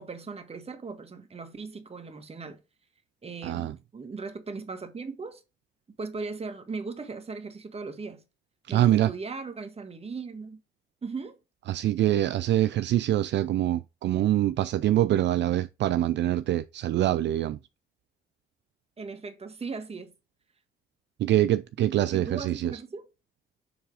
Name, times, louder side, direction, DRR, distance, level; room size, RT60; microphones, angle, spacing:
voice 1, 0.0-2.6 3.2-5.4 6.0-8.2 8.7-10.6 11.0-11.4 19.0-20.1 22.1-23.1, right 4 dB, 30° right, 1.4 m, -38 dB
voice 2, 3.4-3.7 8.7-9.1 11.7-17.6 21.2-22.7, right 13 dB, 65° right, 0.4 m, -24 dB
7.2 x 3.3 x 4.9 m
cardioid pair, 90°, 20 cm